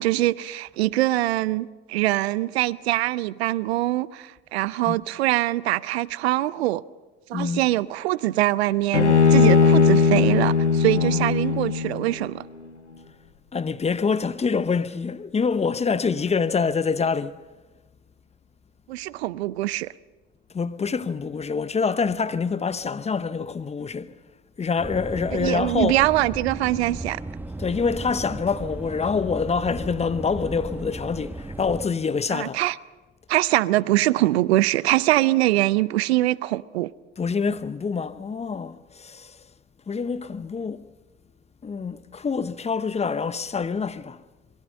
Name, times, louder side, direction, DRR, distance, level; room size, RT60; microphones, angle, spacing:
voice 1, 0.0-6.8 7.3-12.5 18.9-19.9 25.3-27.2 32.3-32.7 33.3-36.9, right 16 dB, 70° right, 0.6 m, -23 dB
voice 2, 7.3-7.6 11.0-11.3 13.5-17.4 20.5-24.1 24.6-26.1 27.6-32.6 37.2-39.5 39.9-40.9 41.6-44.2, left 5 dB, 20° left, 0.9 m, -26 dB
Bowed string instrument, 8.9-12.2, left 5 dB, 90° left, 1.1 m, -18 dB
sound 1, 24.8-31.9, right 2 dB, 5° right, 1.0 m, -35 dB
27.0 x 22.0 x 5.5 m
figure-of-eight pair, 70°, 33 cm